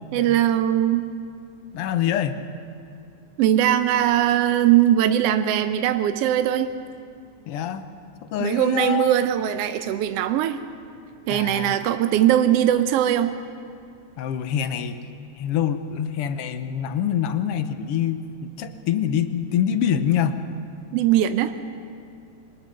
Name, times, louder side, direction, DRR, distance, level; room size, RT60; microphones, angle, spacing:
voice 1, 0.1-1.0 3.4-6.7 8.4-10.6 11.3-13.3 20.9-21.5, right 11 dB, 75° right, 9 dB, 1.4 m, -20 dB
voice 2, 1.7-2.4 7.5-7.9 8.2-9.1 11.3-11.8 14.2-15.0 15.4-20.4, left 9 dB, 70° left, 10 dB, 1.5 m, -25 dB
23.5 x 19.5 x 6.5 m, 2.3 s
omnidirectional pair, 3.4 m